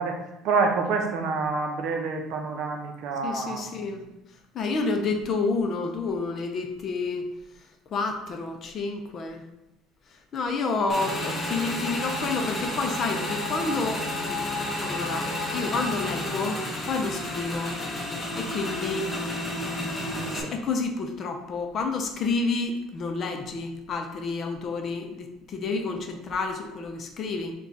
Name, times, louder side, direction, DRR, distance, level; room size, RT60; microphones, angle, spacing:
voice 1, 0.0-3.9 19.6-19.9, right 4 dB, 60° right, 3 dB, 0.6 m, -28 dB
voice 2, 3.2-4.0 4.5-7.3 7.9-9.4 10.3-14.5 14.8-15.3 15.5-17.8 18.1-19.1 20.0-27.5, left 3 dB, 35° left, 4 dB, 0.5 m, -29 dB
Motorcycle / Engine, 10.9-20.4, left 1 dB, 15° left, 0.8 m, -31 dB
4.6 x 2.3 x 4.0 m, 0.90 s
cardioid pair, 150°, 0 cm